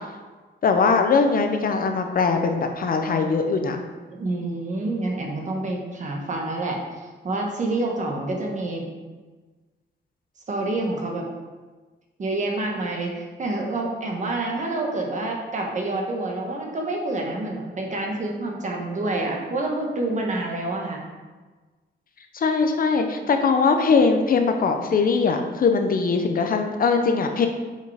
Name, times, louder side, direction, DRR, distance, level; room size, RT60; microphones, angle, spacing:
voice 1, 0.6-3.8 22.3-27.5, left 4 dB, 50° left, 5 dB, 0.7 m, -21 dB
voice 2, 4.1-8.9 10.5-11.2 12.2-21.0, right 2 dB, 40° right, 0 dB, 1.4 m, -28 dB
6.6 x 5.3 x 4.9 m, 1.3 s
wide cardioid pair, 165°, 19 cm